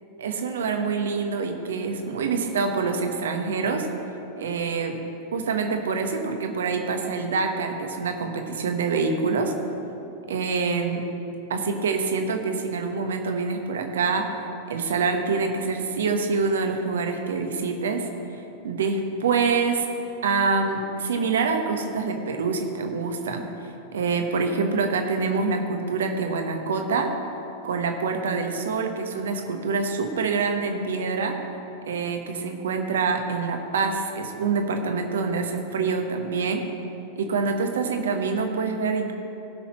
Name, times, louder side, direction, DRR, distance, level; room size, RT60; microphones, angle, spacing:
voice 1, 0.2-3.9 4.4-5.0 5.3-9.5 10.3-11.0 11.5-19.9 20.2-27.1 27.6-31.4 31.9-36.6 37.1-39.1, right 4 dB, 65° right, 4 dB, 1.1 m, -26 dB
18.0 x 5.9 x 4.3 m, 2.8 s
figure-of-eight pair, 90°, 0 cm